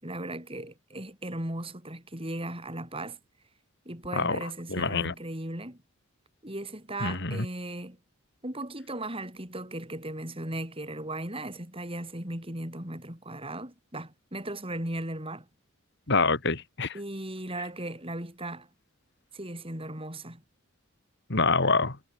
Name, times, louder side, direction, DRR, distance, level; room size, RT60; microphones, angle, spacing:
voice 1, 0.0-3.2 3.8-5.8 6.4-8.0 8.4-15.5 16.9-18.7 19.3-20.4, right 1 dB, 25° right, 6.6 m, -37 dB
voice 2, 4.7-5.1 7.0-7.4 16.1-16.9 21.3-22.0, left 4 dB, 55° left, 2.6 m, -25 dB
head